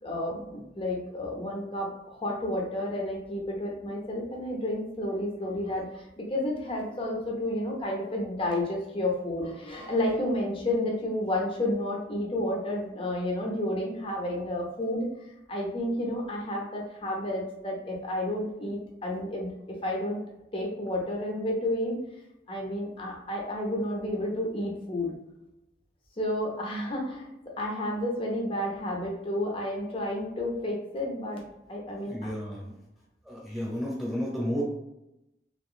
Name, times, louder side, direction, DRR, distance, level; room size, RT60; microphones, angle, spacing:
voice 1, 0.0-15.1 15.5-20.2 20.5-22.0 22.5-25.1 26.2-27.3 27.6-31.4 31.7-32.3, left 1 dB, 30° left, -1 dB, 0.7 m, -31 dB
voice 2, 32.0-32.7 33.3-34.6, equal, ahead, -6 dB, 1.0 m, -32 dB
2.9 x 2.9 x 2.4 m, 0.90 s
head